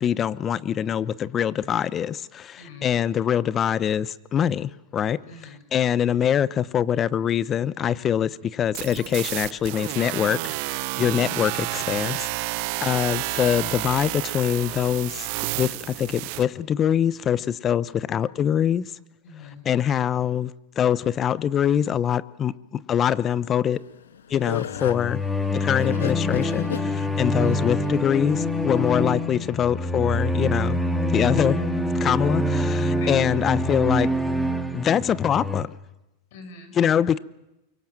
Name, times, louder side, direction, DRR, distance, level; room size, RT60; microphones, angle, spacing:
voice 1, 0.0-5.2 5.7-12.5 12.8-18.9 19.6-23.8 24.3-25.2 25.5-30.8 31.1-31.7 32.0-34.1 34.7-35.8 36.8-37.2, left 9 dB, 30° left, 0.9 m, -24 dB
voice 2, 2.6-2.9 5.3-5.6 10.9-11.2 19.2-19.7 27.3-27.8 32.9-33.3 36.3-36.8, left 4 dB, 65° left, 6.8 m, -43 dB
sound 1, 8.7-16.4, right 22 dB, 55° right, 0.8 m, -30 dB
sound 2, 23.8-28.9, left 8 dB, 90° left, 1.3 m, -34 dB
sound 3, 24.7-35.6, left 1 dB, 5° left, 2.1 m, -25 dB
24.5 x 23.5 x 7.5 m
hypercardioid pair, 115°, 0 cm